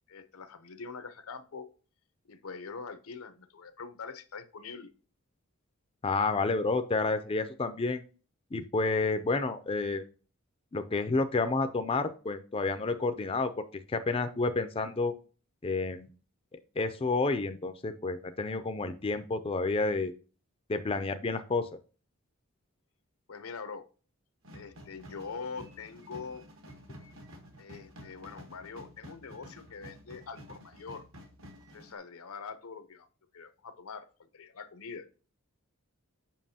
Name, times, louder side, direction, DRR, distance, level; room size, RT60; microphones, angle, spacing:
voice 1, 0.1-1.7 2.3-4.9 23.3-23.9 24.5-26.4 27.6-31.0 31.7-33.1 33.3-34.1 34.3-35.1, left 5 dB, 85° left, 10 dB, 0.8 m, -43 dB
voice 2, 6.0-8.0 8.5-10.0 10.7-15.1 15.6-16.1 16.8-20.1 20.7-21.7, left 3 dB, 25° left, 8 dB, 0.4 m, -30 dB
sound 1, 24.4-32.0, equal, 65° right, 1.4 m, -51 dB
7.3 x 5.5 x 2.8 m, 0.36 s
head